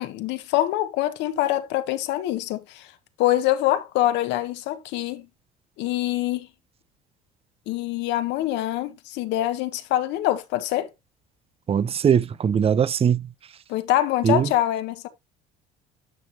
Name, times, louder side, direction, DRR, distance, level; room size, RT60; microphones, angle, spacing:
voice 1, 0.0-2.9 3.2-5.3 5.8-6.5 7.7-10.9 13.7-15.1, left 14 dB, 75° left, 1.3 m, -25 dB
voice 2, 11.7-13.3 14.2-14.5, right 7 dB, 30° right, 0.6 m, -20 dB
11.0 x 5.9 x 2.8 m
supercardioid pair, 70°, 19 cm